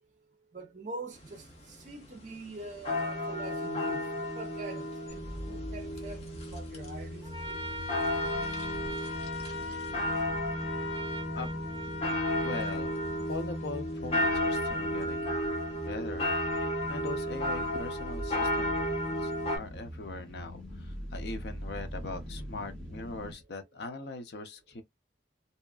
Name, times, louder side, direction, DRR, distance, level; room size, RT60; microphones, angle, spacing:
voice 1, 0.5-7.6, right 2 dB, 40° right, 0.6 m, -44 dB
sound 1, 1.5-1.6 1.9-2.0 2.8-19.6, left 1 dB, 35° left, 0.8 m, -33 dB
sound 2, 5.1-23.3, equal, 5° left, 1.0 m, -43 dB
Trumpet, 7.2-13.8, left 1 dB, 25° right, 1.2 m, -40 dB
voice 2, 12.4-13.0 13.3-15.5 15.8-18.8 19.2-24.8, left 3 dB, 65° left, 0.6 m, -41 dB
2.8 x 2.3 x 2.3 m
head